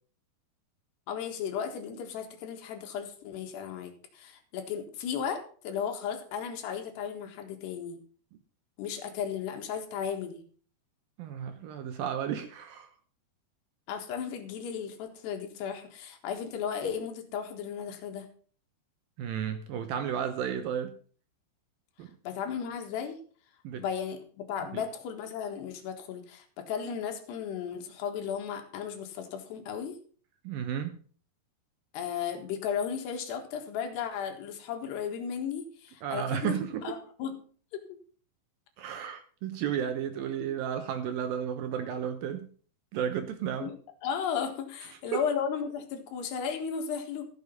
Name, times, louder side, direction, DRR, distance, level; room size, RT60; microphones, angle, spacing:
voice 1, 1.1-8.0 8.8-10.4 13.9-18.3 22.2-23.2 23.7-30.0 31.9-36.6 36.8-37.4 37.7-38.0 40.4-40.5 43.6-43.8 44.0-47.3, left 7 dB, 80° left, 3.6 m, -35 dB
voice 2, 11.2-12.9 19.2-21.0 22.0-22.1 23.6-23.8 24.7-24.8 30.4-30.9 36.0-37.0 38.8-42.5 42.9-43.7 45.1-45.2, right 8 dB, 75° right, 2.3 m, -33 dB
14.5 x 6.9 x 5.4 m
omnidirectional pair, 4.8 m